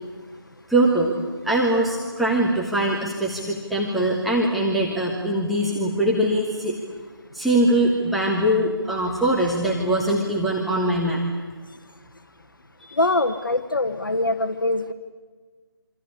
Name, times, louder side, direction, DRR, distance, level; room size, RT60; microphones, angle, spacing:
voice 1, 0.7-1.1 1.4-6.7 7.3-11.2 12.8-13.0, right 1 dB, ahead, -5 dB, 1.4 m, -22 dB
voice 2, 13.0-14.9, left 2 dB, 55° left, 8 dB, 1.5 m, -23 dB
27.0 x 26.0 x 8.4 m, 1.5 s
figure-of-eight pair, 155°, 13 cm